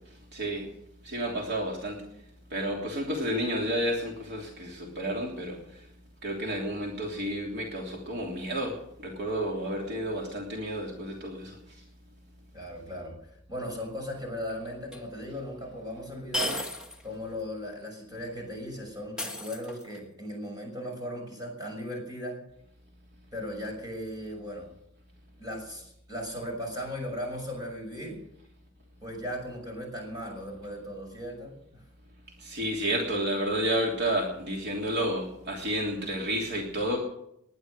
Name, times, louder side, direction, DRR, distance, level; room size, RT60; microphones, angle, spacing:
voice 1, 0.3-0.7 1.0-2.0 2.5-5.6 6.2-11.6 32.4-37.0, right 1 dB, 55° right, -1 dB, 3.2 m, -31 dB
voice 2, 12.5-13.2 13.5-16.6 17.0-22.4 23.3-24.7 25.4-28.2 29.0-31.8, equal, 20° right, 1 dB, 6.3 m, -37 dB
sound 1, 14.9-15.0 16.3-17.0 17.4-17.5 19.2-20.1, left 1 dB, 5° right, 2.1 m, -33 dB
20.0 x 11.0 x 6.6 m, 0.76 s
head